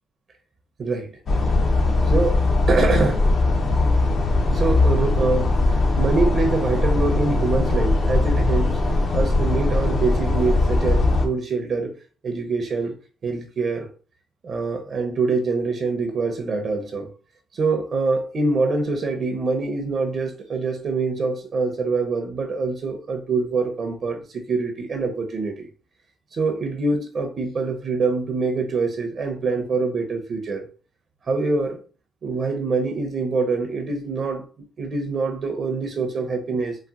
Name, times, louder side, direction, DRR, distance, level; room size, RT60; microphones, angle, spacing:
voice 1, 0.8-1.2 2.1-2.4 2.7-3.3 4.5-8.8 9.1-11.9 12.2-13.0 13.2-13.9 14.4-17.1 17.5-25.7 26.3-30.7 31.3-31.8 32.2-34.4 34.8-36.8, right 3 dB, 50° right, 0.6 m, -24 dB
sound 1, 1.3-11.3, left 2 dB, 50° left, 0.7 m, -20 dB
4.0 x 2.1 x 2.4 m
cardioid pair, 90°, 0 cm